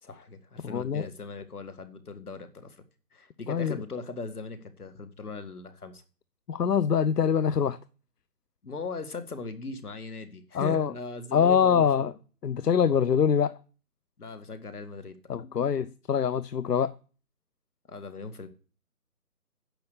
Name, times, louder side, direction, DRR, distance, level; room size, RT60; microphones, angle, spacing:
voice 1, 0.0-2.8 3.1-6.0 8.6-12.1 14.2-15.3 17.9-18.5, left 3 dB, 70° left, 2.0 m, -39 dB
voice 2, 0.6-1.1 3.5-3.8 6.5-7.8 10.5-10.9 11.3-12.1 12.4-13.6 15.3-16.9, left 7 dB, 85° left, 0.8 m, -24 dB
10.5 x 6.9 x 8.0 m
hypercardioid pair, 175°, 47 cm